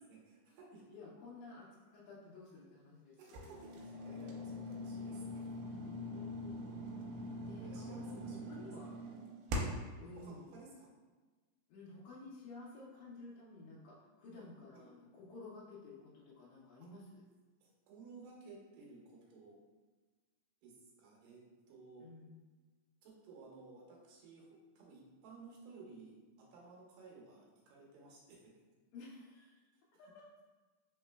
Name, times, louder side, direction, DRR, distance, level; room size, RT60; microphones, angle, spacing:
voice 1, 0.1-0.8 3.2-5.5 7.2-7.4 7.6-8.7 10.1-10.9 14.8-14.9 17.6-19.6 20.6-20.7 21.0-21.4 21.7-22.1 23.0-24.5 24.8-26.1 26.5-28.4, right 4 dB, 75° right, -3 dB, 2.4 m, -56 dB
voice 2, 0.9-3.7 6.0-6.9 7.4-9.0 10.0-10.6 11.7-17.2 22.0-22.5 28.9-29.5 30.0-30.2, left 3 dB, 85° left, -6 dB, 1.6 m, -53 dB
sound 1, 3.3-10.0, left 1 dB, 90° right, 2.4 m, -43 dB
4.7 x 3.7 x 2.2 m, 1.3 s
omnidirectional pair, 4.1 m